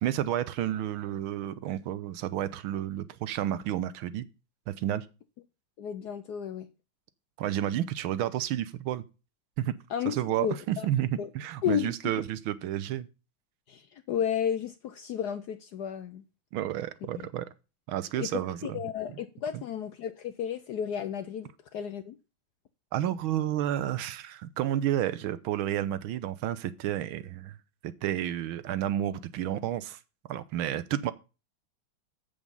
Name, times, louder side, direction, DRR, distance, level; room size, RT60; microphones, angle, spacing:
voice 1, 0.0-4.3 4.7-5.1 7.4-9.0 9.6-9.7 10.1-13.1 16.5-17.5 17.9-18.8 19.1-19.2 19.5-19.6 22.9-27.6 27.8-30.0 30.3-31.1, right 12 dB, 80° right, 1.5 m, -31 dB
voice 2, 5.8-6.7 9.9-10.9 11.2-11.3 11.6-11.9 13.7-16.2 18.2-22.2, left 9 dB, 70° left, 1.0 m, -33 dB
7.9 x 7.1 x 5.3 m
omnidirectional pair, 2.3 m